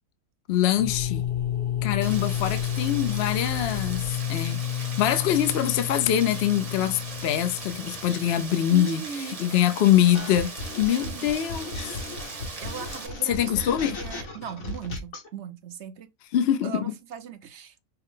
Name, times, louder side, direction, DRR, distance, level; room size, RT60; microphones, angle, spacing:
voice 1, 0.5-1.2 1.8-9.0 9.3-12.0 13.2-14.0 16.3-16.9, left 11 dB, 65° left, 0.7 m, -24 dB
sound 1, 0.7-8.5, left 11 dB, 45° left, 1.4 m, -30 dB
Rain, 2.0-13.1, right 4 dB, 35° right, 0.7 m, -39 dB
voice 2, 8.7-9.4 11.0-11.3 12.3-16.1 16.6-17.8, right 8 dB, 65° right, 0.9 m, -38 dB
sound 2, 10.1-15.3, left 2 dB, 80° left, 1.6 m, -36 dB
5.6 x 2.1 x 3.6 m
omnidirectional pair, 1.4 m